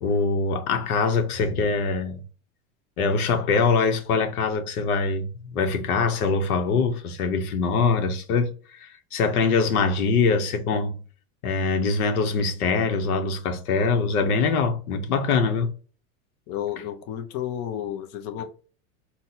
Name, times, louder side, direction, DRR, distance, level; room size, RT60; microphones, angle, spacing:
voice 1, 0.0-2.2 3.0-11.0 11.4-15.7, left 4 dB, 85° left, 0.9 m, -23 dB
voice 2, 15.1-15.5 16.5-18.4, left 10 dB, 40° left, 0.5 m, -32 dB
4.0 x 2.2 x 2.6 m
supercardioid pair, 115°, 43 cm